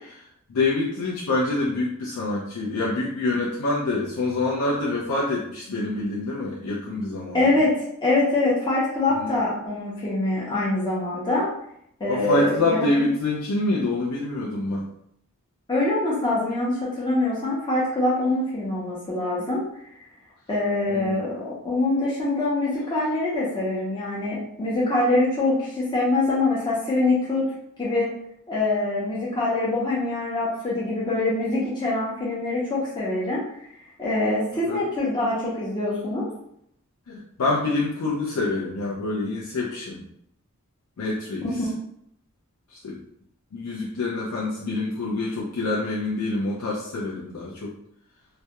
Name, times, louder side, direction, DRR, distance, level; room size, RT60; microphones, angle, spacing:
voice 1, 0.5-7.6 9.1-9.3 12.1-14.9 20.9-21.2 34.7-34.8 37.1-40.1 41.0-41.4 42.7-43.0 43.5-47.7, left 2 dB, 85° left, -5 dB, 0.4 m, -26 dB
voice 2, 7.3-11.5 12.0-13.1 15.7-19.6 20.5-27.4 27.8-28.1 28.5-33.4 34.0-36.3 41.4-41.7, left 2 dB, 20° left, -7 dB, 0.5 m, -24 dB
2.2 x 2.0 x 2.8 m, 0.73 s
head